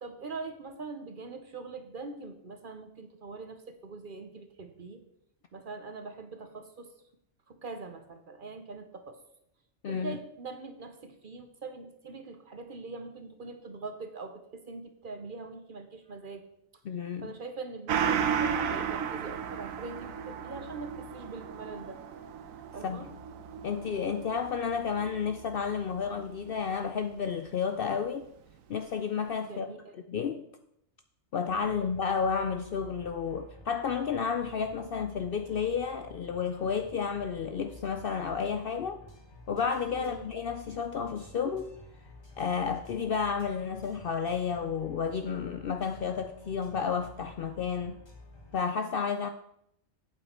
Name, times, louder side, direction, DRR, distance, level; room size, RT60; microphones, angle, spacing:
voice 1, 0.0-5.0 5.5-6.9 7.5-9.2 9.9-16.5 17.2-22.0 22.7-23.1 29.4-30.0 31.6-31.9 39.9-40.3, right 3 dB, 45° right, 0.8 m, -43 dB
voice 2, 9.8-10.2 16.9-17.4 22.8-23.1 23.6-28.3 28.7-29.7 30.1-30.4 31.3-39.0 39.5-41.7 42.4-48.0 48.5-49.3, left 6 dB, 60° left, 0.6 m, -31 dB
Gong, 17.9-26.8 27.2-27.3, right 7 dB, 85° right, 1.1 m, -35 dB
sound 1, 31.5-48.6, left 1 dB, 20° left, 1.3 m, -52 dB
8.4 x 8.3 x 4.3 m
omnidirectional pair, 1.4 m